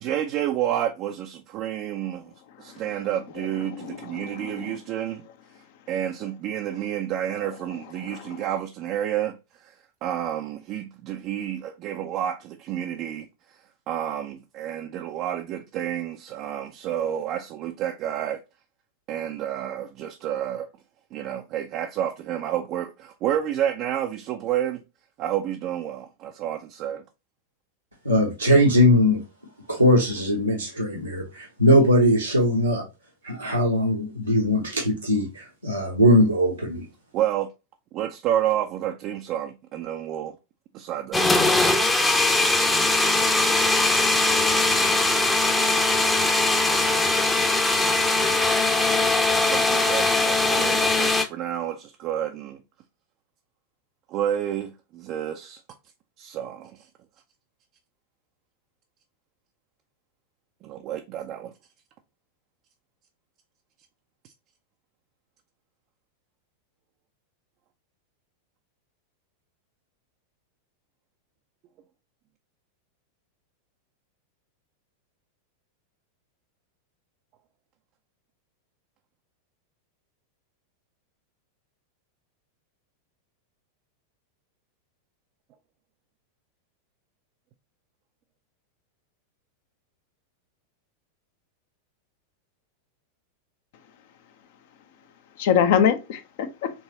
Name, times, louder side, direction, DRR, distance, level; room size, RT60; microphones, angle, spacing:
voice 1, 0.0-2.3 2.6-5.2 5.9-9.7 10.0-13.3 13.9-18.4 19.1-20.7 21.1-24.8 25.2-27.0 37.1-37.5 37.9-40.4 40.7-41.3 49.4-52.6 54.1-55.6 56.2-56.9 60.6-61.5, right 11 dB, 40° right, 0.4 m, -30 dB
voice 2, 3.7-4.8 8.0-8.2 95.4-96.7, left 8 dB, 50° left, 0.7 m, -24 dB
voice 3, 28.0-29.2 29.7-32.8 33.2-36.8, equal, 90° right, 1.1 m, -20 dB
sound 1, 41.1-51.2, left 2 dB, 10° left, 0.7 m, -21 dB
4.6 x 3.1 x 2.7 m
figure-of-eight pair, 90°, 0 cm